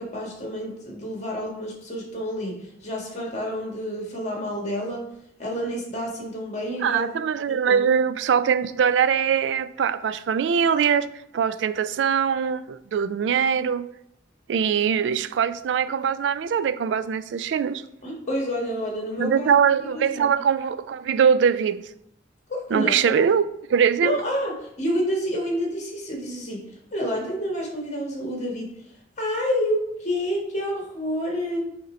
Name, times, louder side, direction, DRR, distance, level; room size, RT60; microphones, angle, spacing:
voice 1, 0.0-5.1 5.4-7.1 7.5-7.8 18.0-19.5 19.9-20.3 22.5-23.2 24.0-26.6 26.9-28.7 29.2-31.6, equal, 40° left, 1.6 m, -29 dB
voice 2, 6.8-13.9 14.5-17.8 19.2-21.8 22.7-24.2, right 7 dB, 80° right, 0.3 m, -22 dB
6.6 x 2.9 x 5.0 m
head